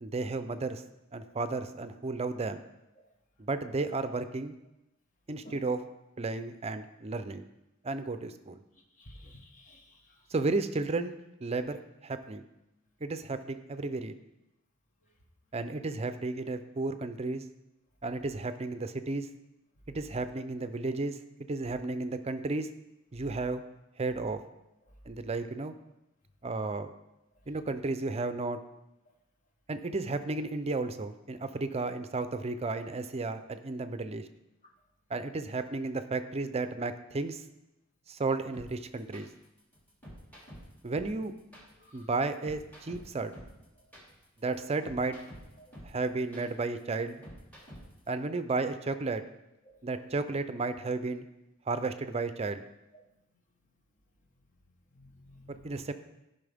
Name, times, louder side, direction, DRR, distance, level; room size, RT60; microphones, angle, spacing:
voice 1, 0.0-0.8 1.1-2.6 3.4-4.6 5.3-5.8 6.2-7.5 7.8-8.6 10.3-11.1 11.4-12.4 13.0-14.1 15.5-17.4 18.0-19.3 19.9-21.2 21.5-22.7 23.1-23.6 24.0-24.4 25.1-25.7 26.4-26.9 27.5-28.6 29.7-34.3 35.1-37.4 38.1-39.3 40.8-41.3 41.9-43.3 44.4-45.2 45.8-47.2 48.1-49.2 49.8-51.3 51.7-52.6 55.5-55.9, right 3 dB, 30° right, 10 dB, 0.5 m, -33 dB
voice 2, 9.0-9.9 41.8-42.0 49.7-49.8 55.0-55.8, equal, 40° left, 2 dB, 1.3 m, -52 dB
sound 1, 38.5-48.1, equal, 10° left, 2.6 m, -49 dB
15.0 x 5.6 x 3.5 m, 0.92 s
head